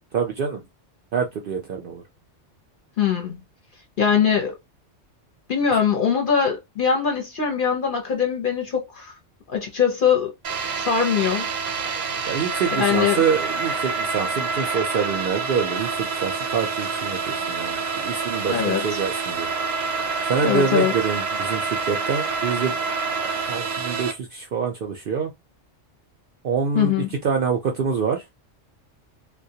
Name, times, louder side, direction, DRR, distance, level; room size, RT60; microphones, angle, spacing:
voice 1, 0.1-0.6 1.1-2.0 12.3-19.5 20.3-22.8 23.5-25.3 26.4-26.9 27.2-28.2, right 6 dB, 60° right, 0.6 m, -26 dB
voice 2, 3.0-3.4 4.0-4.5 5.5-9.1 9.5-10.3 10.8-11.5 12.8-13.2 18.5-19.0 20.4-20.9 26.7-27.1, left 7 dB, 50° left, 0.7 m, -22 dB
sound 1, 10.4-24.1, right 4 dB, 90° right, 1.0 m, -27 dB
2.2 x 2.1 x 2.7 m
omnidirectional pair, 1.3 m